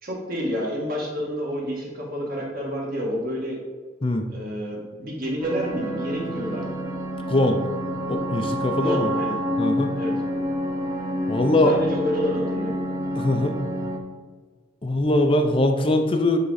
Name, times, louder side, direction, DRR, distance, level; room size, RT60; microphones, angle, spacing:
voice 1, 0.0-3.6 4.3-6.8 8.8-9.4 9.9-10.2 11.6-12.8, equal, 45° right, -2 dB, 1.8 m, -29 dB
sound 1, 5.4-14.0, equal, 20° right, 0.7 m, -28 dB
voice 2, 7.3-7.6 8.1-9.1 9.6-9.9 11.3-11.7 13.1-13.6 14.8-16.4, left 1 dB, 25° left, 5 dB, 0.5 m, -21 dB
10.5 x 3.6 x 4.1 m, 1.5 s
head